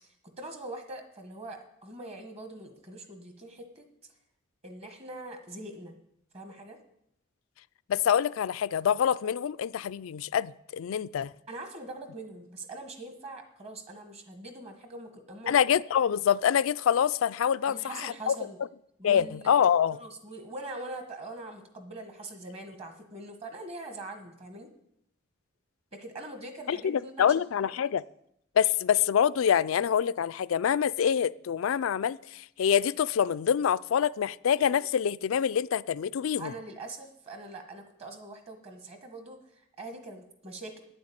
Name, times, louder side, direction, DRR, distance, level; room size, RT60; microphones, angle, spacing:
voice 1, 0.4-3.9 4.6-6.0 6.3-6.8 11.5-15.5 17.7-18.6 19.0-19.5 20.0-24.7 25.9-27.9 36.4-40.8, right 2 dB, 30° right, 6 dB, 1.5 m, -43 dB
voice 2, 7.9-11.3 15.5-18.4 19.0-20.0 26.7-28.0 28.6-36.5, left 8 dB, 90° left, 18 dB, 0.4 m, -26 dB
9.4 x 7.7 x 8.8 m, 0.78 s
head